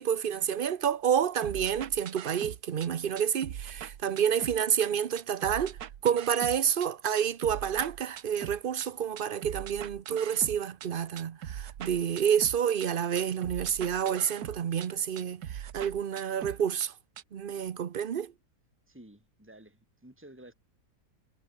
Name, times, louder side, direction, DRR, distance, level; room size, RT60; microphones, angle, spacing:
voice 1, 0.0-5.8 6.0-16.9 17.3-18.3, right 8 dB, 50° right, 0.6 m, -29 dB
sound 1, 1.4-2.9 3.2-4.9 5.2-6.9 7.2-8.9 9.2-10.9 11.2-12.9 13.2-14.9 15.2-16.9 17.2-17.3, right 10 dB, 70° right, 1.5 m, -41 dB
voice 2, 18.9-20.5, right 1 dB, 5° right, 3.9 m, -52 dB
omnidirectional pair, 1.7 m